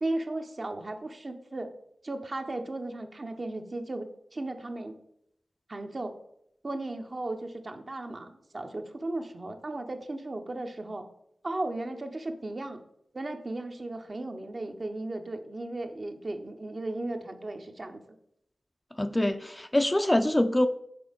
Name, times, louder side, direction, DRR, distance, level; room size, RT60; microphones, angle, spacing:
voice 1, 0.0-1.7 2.0-4.9 5.7-6.1 6.6-11.1 11.4-12.8 13.1-18.0, right 2 dB, 45° right, 5 dB, 0.8 m, -35 dB
voice 2, 19.0-20.7, left 1 dB, 20° left, 9 dB, 0.5 m, -24 dB
6.1 x 3.9 x 5.1 m, 0.73 s
cardioid pair, 45°, 0 cm